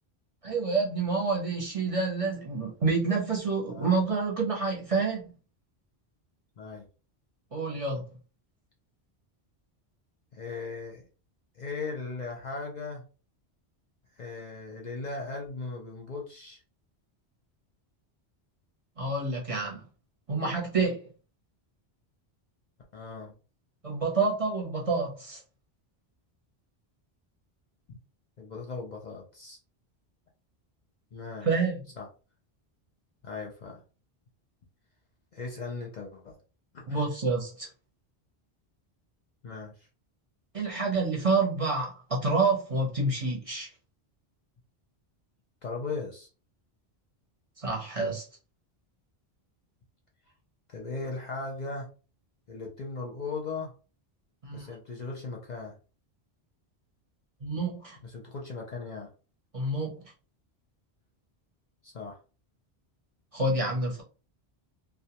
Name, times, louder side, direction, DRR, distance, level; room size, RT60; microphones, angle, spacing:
voice 1, 0.4-5.3 7.5-8.0 19.0-19.8 20.3-21.0 23.8-25.4 31.4-31.8 36.9-37.7 40.5-43.7 47.6-48.3 54.4-54.7 57.4-58.0 59.5-60.0 63.3-64.0, right 3 dB, 35° right, 0.7 m, -28 dB
voice 2, 6.6-6.9 10.3-11.1 11.5-13.1 14.2-16.6 22.9-23.4 27.9-28.0 28.4-29.6 31.1-31.5 32.0-32.1 33.2-33.8 35.3-36.4 36.7-37.0 39.4-39.9 45.6-46.3 50.7-51.9 52.5-53.7 54.5-55.8 58.0-59.1 61.8-62.2, left 3 dB, 50° left, 0.6 m, -38 dB
2.3 x 2.2 x 2.8 m
omnidirectional pair, 1.1 m